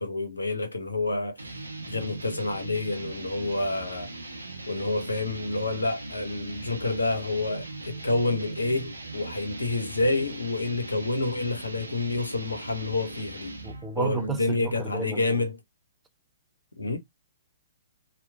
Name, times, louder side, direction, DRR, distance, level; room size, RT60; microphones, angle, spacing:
voice 1, 0.0-1.5 1.9-4.1 4.7-13.5 13.9-15.6 16.8-17.0, left 2 dB, 80° left, 0.7 m, -28 dB
sound 1, 1.4-13.9, right 2 dB, 85° right, 0.7 m, -40 dB
voice 2, 13.6-15.4, right 4 dB, 10° right, 0.4 m, -32 dB
2.9 x 2.1 x 2.3 m
figure-of-eight pair, 120°, 0 cm